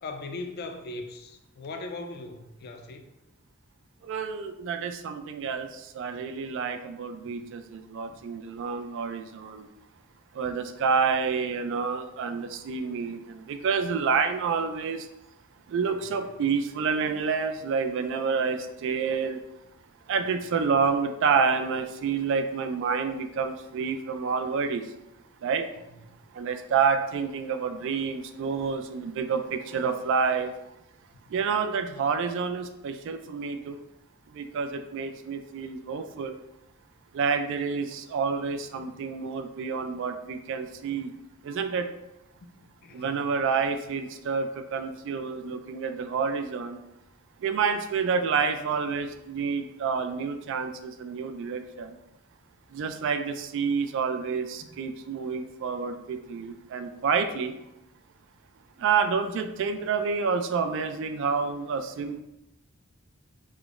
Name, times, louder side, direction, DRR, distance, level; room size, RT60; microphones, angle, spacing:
voice 1, 0.0-3.0 5.6-5.7 6.1-6.5 8.1-8.2 26.0-26.2 31.3-31.4 38.8-38.9 40.9-41.0 42.6-43.2 54.6-54.8, left 2 dB, 50° left, 5 dB, 0.4 m, -40 dB
voice 2, 4.0-9.7 10.3-15.1 15.7-19.4 20.1-24.8 25.4-25.7 26.3-30.5 31.3-33.8 34.3-36.3 37.1-41.1 41.4-41.9 42.9-46.8 47.4-52.0 52.7-57.5 58.8-62.2, right 5 dB, 65° right, 8 dB, 0.3 m, -28 dB
4.9 x 2.0 x 2.4 m, 0.88 s
head